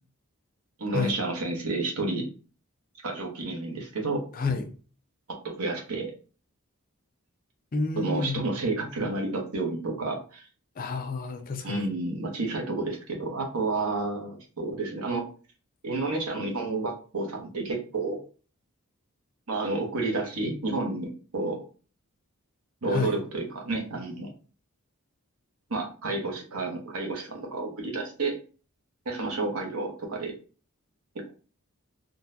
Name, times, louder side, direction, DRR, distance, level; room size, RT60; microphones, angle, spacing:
voice 1, 0.8-2.3 3.0-4.3 5.3-6.1 8.0-10.5 11.6-15.3 15.8-18.2 19.5-21.6 22.8-24.3 25.7-28.4 29.0-30.3 31.1-31.3, right 2 dB, 80° right, 0.9 m, -30 dB
voice 2, 4.3-4.7 7.7-8.4 10.8-11.9 22.8-23.1, left 4 dB, 40° left, 0.4 m, -30 dB
3.8 x 2.2 x 2.6 m
head